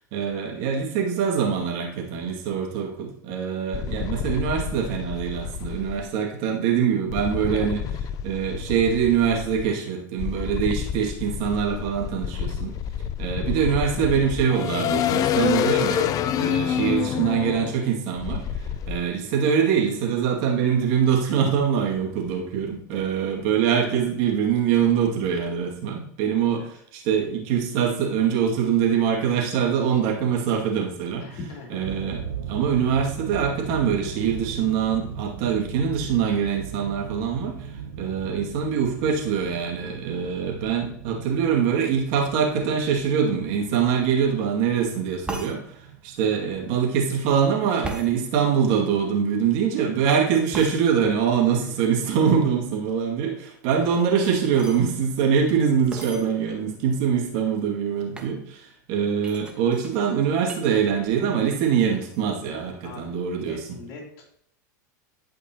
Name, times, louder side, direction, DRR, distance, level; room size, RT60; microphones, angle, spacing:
voice 1, 0.1-12.8 13.2-31.3 31.7-32.2 32.5-37.7 38.0-45.6 46.0-63.8, right 7 dB, 55° right, -1 dB, 2.2 m, -24 dB
sound 1, 3.7-6.0 7.1-9.7 10.2-19.0, left 9 dB, 35° left, 0.5 m, -28 dB
voice 2, 31.2-31.9 62.8-63.1 63.4-64.4, left 3 dB, 60° left, -1 dB, 3.2 m, -41 dB
sound 2, 31.8-48.1, right 6 dB, 80° right, 1.3 m, -39 dB
sound 3, 45.3-45.5 47.8-48.1 50.5-50.7 53.8-54.8 55.9-56.2 56.9-57.0 57.2-57.6 58.1-58.4 59.2-60.7 61.0-61.5 61.8-62.2, right 2 dB, 10° right, 1.3 m, -37 dB
12.0 x 5.2 x 2.9 m, 0.69 s
hypercardioid pair, 110°, 10 cm